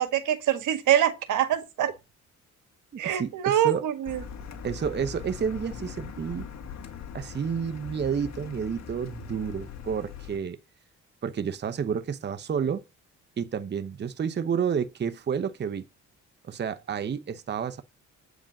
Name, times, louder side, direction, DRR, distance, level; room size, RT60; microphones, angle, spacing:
voice 1, 0.0-1.9 3.0-4.2, right 11 dB, 80° right, 1.7 m, -24 dB
voice 2, 3.0-3.8 4.6-6.5 7.1-10.6 11.2-12.8 13.4-15.9 16.4-17.8, right 7 dB, 35° right, 0.8 m, -30 dB
Car, 4.1-10.4, left 6 dB, 65° left, 2.0 m, -41 dB
8.7 x 5.0 x 6.5 m
cardioid pair, 90°, 30 cm